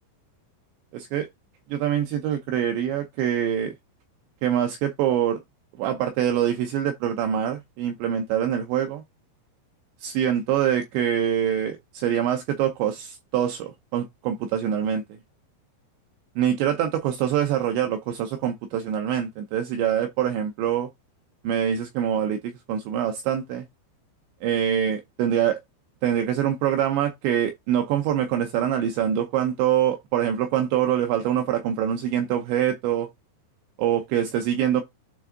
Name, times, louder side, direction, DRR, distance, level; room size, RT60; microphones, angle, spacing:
voice 1, 0.9-1.3 1.7-3.7 4.4-5.4 5.8-9.0 10.0-15.2 16.4-20.9 21.4-23.7 24.4-25.6 26.0-33.1 33.8-34.8, right 10 dB, 80° right, 2.5 m, -24 dB
9.4 x 3.5 x 3.7 m
omnidirectional pair, 6.0 m